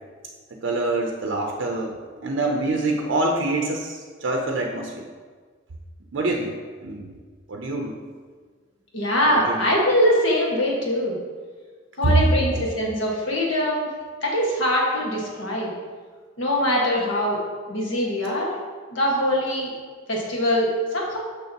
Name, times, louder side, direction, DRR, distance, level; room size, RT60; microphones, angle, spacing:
voice 1, 0.6-5.1 6.1-6.5 6.8-7.1 7.5-8.0 9.3-9.6 12.0-12.2 12.6-12.7, right 2 dB, 70° right, 1 dB, 0.6 m, -25 dB
voice 2, 8.9-11.2 12.0-13.9 14.2-15.7 16.4-17.4 17.7-18.5 18.9-19.7 20.1-21.2, equal, 70° left, -3 dB, 1.5 m, -22 dB
6.5 x 6.3 x 2.9 m, 1.6 s
head